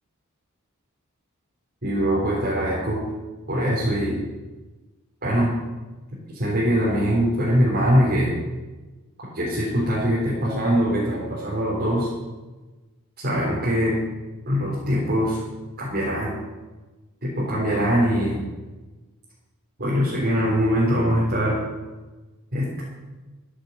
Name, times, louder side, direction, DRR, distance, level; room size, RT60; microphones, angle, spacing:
voice 1, 1.8-3.0 3.5-4.2 5.2-5.5 6.3-8.3 9.3-12.1 13.2-14.0 14.5-15.4 15.8-16.3 17.2-18.4 19.8-21.6 22.5-22.8, equal, 45° right, -7 dB, 3.7 m, -22 dB
13.5 x 7.9 x 8.0 m, 1.2 s
head